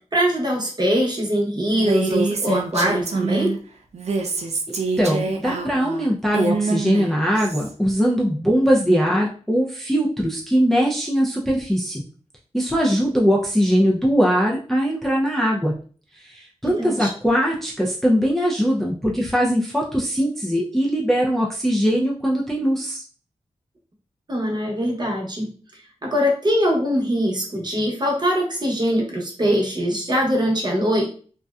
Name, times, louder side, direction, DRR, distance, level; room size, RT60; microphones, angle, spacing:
voice 1, 0.1-3.5 16.6-17.1 24.3-25.5 26.0-31.1, equal, 35° right, -1 dB, 0.9 m, -22 dB
Female speech woman speaking, 1.7-3.6 3.9-7.7, right 4 dB, 70° right, 0.4 m, -25 dB
voice 2, 4.7-12.0 12.5-15.7 16.1-23.0, equal, ahead, -3 dB, 0.4 m, -21 dB
2.6 x 2.2 x 2.3 m, 0.41 s
wide cardioid pair, 85°, 12 cm